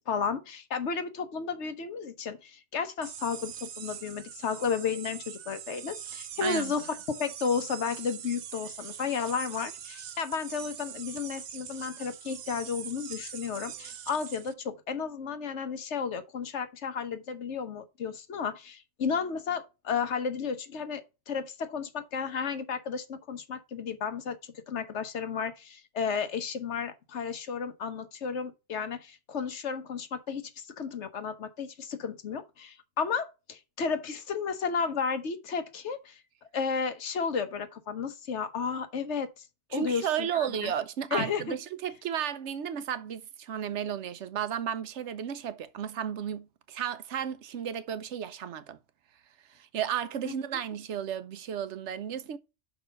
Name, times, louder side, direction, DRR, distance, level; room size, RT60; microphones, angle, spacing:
voice 1, 0.1-36.2 36.5-39.5 39.7-40.7 41.1-41.5 50.2-50.3, left 6 dB, 90° left, 1.3 m, -33 dB
sound 1, 3.0-14.5, right 9 dB, 55° right, 0.5 m, -43 dB
voice 2, 6.4-6.7 39.7-48.8 49.5-52.4, right 9 dB, 85° right, 1.0 m, -33 dB
6.0 x 5.0 x 5.2 m
omnidirectional pair, 1.1 m